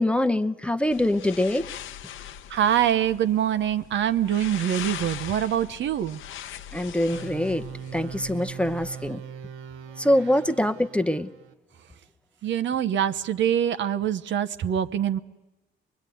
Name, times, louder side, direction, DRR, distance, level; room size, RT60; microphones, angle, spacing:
voice 1, 0.0-1.7 6.7-7.6 7.9-9.2 10.0-11.3, left 1 dB, 5° left, 8 dB, 0.8 m, -24 dB
sound 1, 0.9-9.1, left 10 dB, 80° left, 0.9 m, -41 dB
voice 2, 2.5-6.2 12.4-15.2, right 10 dB, 70° right, 12 dB, 0.9 m, -24 dB
sound 2, 7.1-11.5, right 8 dB, 85° right, 1.2 m, -40 dB
23.0 x 22.0 x 9.3 m, 1.0 s
cardioid pair, 90°, 20 cm